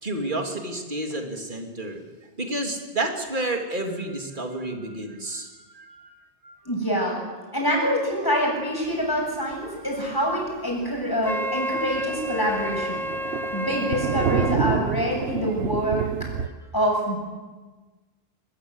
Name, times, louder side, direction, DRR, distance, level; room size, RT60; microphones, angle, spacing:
voice 1, 0.0-2.0 2.4-6.1 6.4-6.5 13.3-13.4, right 2 dB, 50° right, 3 dB, 3.0 m, -30 dB
voice 2, 6.6-7.2 7.5-13.1 13.5-16.1 16.7-17.2, equal, 20° left, -1 dB, 7.9 m, -25 dB
Thunder, 9.5-9.7 10.1-10.2 10.5-10.6 10.9-11.0 11.3-16.5, right 6 dB, 80° right, 1.3 m, -29 dB
Wind instrument woodwind instrument, 11.2-14.6, equal, 5° left, 0.6 m, -30 dB
22.0 x 21.5 x 8.0 m, 1.3 s
omnidirectional pair, 1.1 m